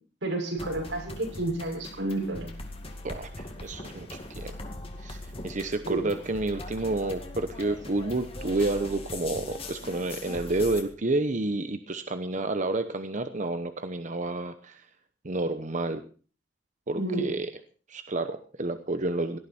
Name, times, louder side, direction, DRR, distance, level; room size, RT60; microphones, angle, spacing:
voice 1, 0.2-2.5 5.8-6.1 16.9-17.3, right 2 dB, 90° right, 1 dB, 6.3 m, -30 dB
sound 1, 0.6-10.8, left 2 dB, 30° left, 2.3 m, -40 dB
voice 2, 3.0-4.5 5.0-14.8 15.2-16.0 16.9-17.5 17.9-19.4, right 2 dB, 40° right, 9 dB, 0.9 m, -30 dB
17.5 x 13.0 x 4.4 m, 0.40 s
head